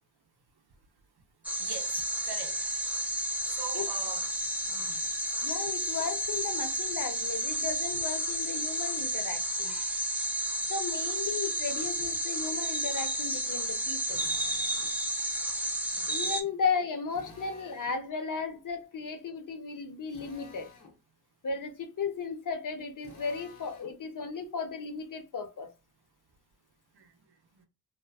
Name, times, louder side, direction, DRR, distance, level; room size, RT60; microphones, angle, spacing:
sound 1, 1.4-16.4, right 1 dB, 5° right, 0.4 m, -31 dB
voice 1, 1.6-2.6 3.5-4.3 4.7-5.0 15.9-16.1 27.0-27.1, right 6 dB, 90° right, 0.6 m, -43 dB
voice 2, 5.4-9.8 10.7-14.3 16.1-20.7 21.4-25.7, left 5 dB, 55° left, 0.7 m, -35 dB
Drill, 14.1-14.9 17.1-18.0 20.1-21.0 23.0-24.0, left 3 dB, 90° left, 0.9 m, -52 dB
2.9 x 2.1 x 2.3 m
cardioid pair, 65°, 38 cm